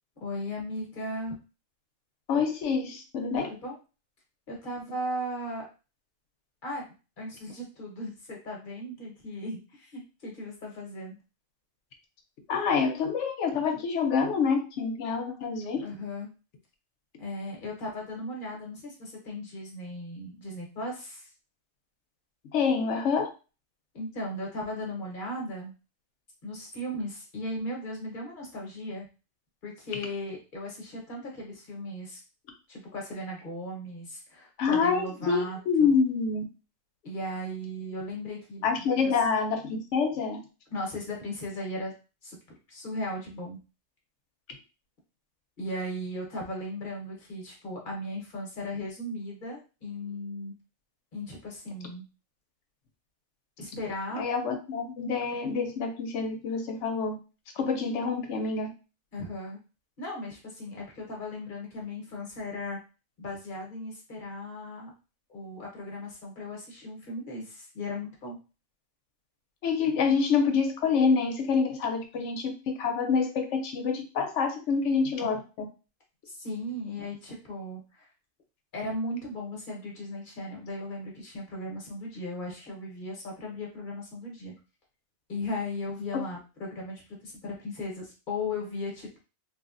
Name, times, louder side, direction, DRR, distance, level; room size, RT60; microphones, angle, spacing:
voice 1, 0.2-1.4 3.4-3.8 4.5-5.7 6.6-6.8 7.2-11.2 15.8-16.3 17.2-21.3 23.9-25.7 26.4-29.1 29.6-32.2 32.7-35.9 37.0-39.1 40.7-41.9 42.2-43.6 45.6-50.5 51.1-52.0 53.6-54.2 59.1-59.6 60.0-62.8 63.2-64.9 65.3-68.4 76.2-78.1 78.7-84.5 85.3-89.2, left 1 dB, 45° left, -1 dB, 1.1 m, -37 dB
voice 2, 2.3-3.5 12.5-15.8 22.5-23.3 34.6-36.4 38.6-40.4 54.2-57.2 57.6-58.7 69.6-75.7 86.1-86.2, left 5 dB, 80° left, 5 dB, 0.9 m, -27 dB
3.3 x 2.2 x 2.4 m, 0.32 s
omnidirectional pair, 1.2 m